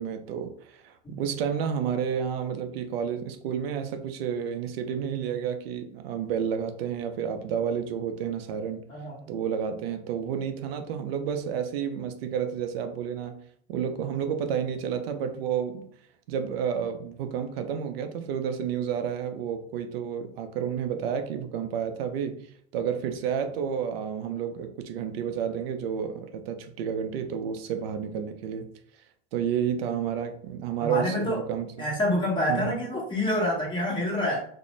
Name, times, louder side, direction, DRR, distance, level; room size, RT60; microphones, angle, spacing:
voice 1, 0.0-8.8 9.3-13.4 13.7-15.9 16.3-28.7 29.3-31.9 32.5-32.8, right 8 dB, 70° right, 7 dB, 0.5 m, -30 dB
voice 2, 30.8-31.4 31.8-34.4, left 1 dB, 15° left, -4 dB, 1.1 m, -27 dB
2.5 x 2.0 x 3.1 m, 0.62 s
hypercardioid pair, 110°, 31 cm